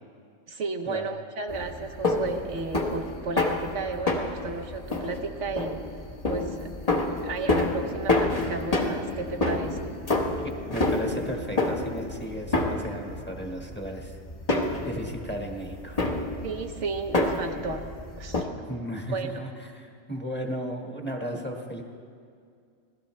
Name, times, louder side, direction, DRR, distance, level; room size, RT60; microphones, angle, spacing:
voice 1, 0.5-5.8 6.3-6.7 7.2-9.9 16.4-17.9 18.2-18.5 19.1-19.4, right 4 dB, 65° right, 5 dB, 1.1 m, -33 dB
sound 1, 1.5-18.4, left 2 dB, 30° left, 1.2 m, -29 dB
voice 2, 10.4-14.2 14.8-16.0 18.6-21.8, equal, 10° left, 1 dB, 1.3 m, -35 dB
25.5 x 17.0 x 3.2 m, 2.2 s
omnidirectional pair, 1.4 m